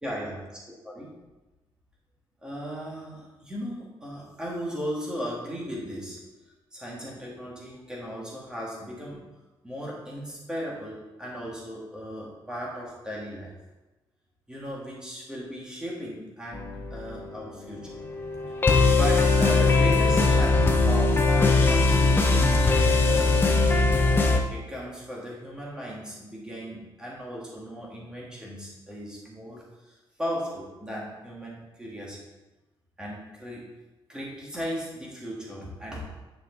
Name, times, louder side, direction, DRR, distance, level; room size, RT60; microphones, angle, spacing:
voice 1, 0.0-0.4 0.8-1.1 2.4-6.2 6.7-9.2 9.6-13.5 14.5-18.0 18.9-24.0 24.5-32.2 33.0-33.7 34.1-36.0, equal, 10° right, -5 dB, 1.8 m, -36 dB
sound 1, 16.5-17.3 17.7-24.4, left 3 dB, 25° left, 0.7 m, -21 dB
9.6 x 5.1 x 3.9 m, 1.1 s
wide cardioid pair, 165°, 9 cm